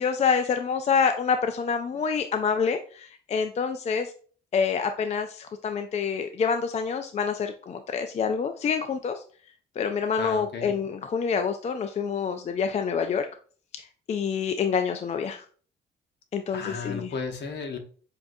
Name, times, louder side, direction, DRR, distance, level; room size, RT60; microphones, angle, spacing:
voice 1, 0.0-4.1 4.5-9.2 9.8-13.3 14.1-15.4 16.3-17.1, left 6 dB, 35° left, 6 dB, 0.3 m, -27 dB
voice 2, 10.2-10.7 16.5-17.8, left 5 dB, 60° left, 4 dB, 1.0 m, -34 dB
6.9 x 2.5 x 2.6 m, 0.43 s
cardioid pair, 90°, 20 cm